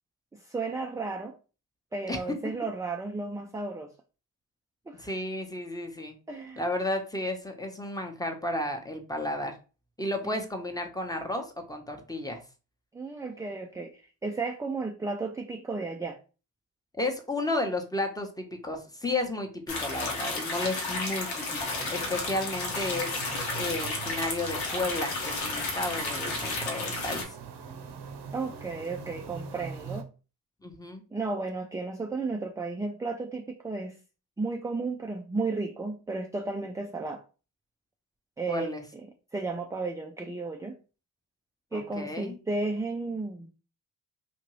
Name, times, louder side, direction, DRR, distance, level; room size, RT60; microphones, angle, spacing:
voice 1, 0.3-1.3 1.9-3.9 4.9-5.1 6.3-6.6 10.2-10.4 12.9-16.2 28.3-30.1 31.1-34.0 34.4-37.2 38.4-38.7 38.9-39.1 39.3-40.8 41.7-43.5, right 3 dB, 10° right, 0.3 m, -33 dB
voice 2, 5.0-6.2 6.6-9.6 10.0-12.4 17.0-27.4 30.6-31.0 38.5-38.8 41.7-42.3, left 2 dB, 10° left, 0.9 m, -33 dB
sound 1, 19.7-27.2, left 3 dB, 75° left, 1.1 m, -32 dB
sound 2, 21.5-30.0, right 6 dB, 60° right, 0.8 m, -42 dB
2.8 x 2.6 x 3.0 m
hypercardioid pair, 50°, 47 cm